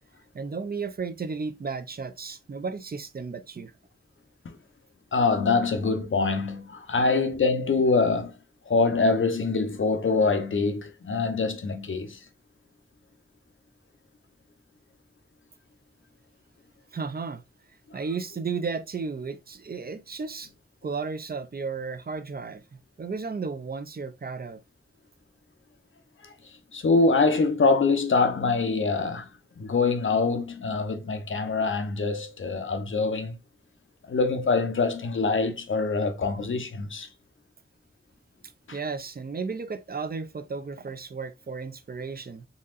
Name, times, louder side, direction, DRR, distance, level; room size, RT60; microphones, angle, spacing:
voice 1, 0.3-3.7 16.9-17.4 17.9-20.5 20.8-24.6 38.7-42.5, right 4 dB, 50° right, 0.5 m, -34 dB
voice 2, 5.1-8.3 8.7-12.2 26.2-26.3 26.7-29.3 29.6-33.4 34.1-37.1 38.7-38.8, left 4 dB, 70° left, 0.8 m, -24 dB
4.1 x 3.7 x 2.5 m
wide cardioid pair, 85°, 21 cm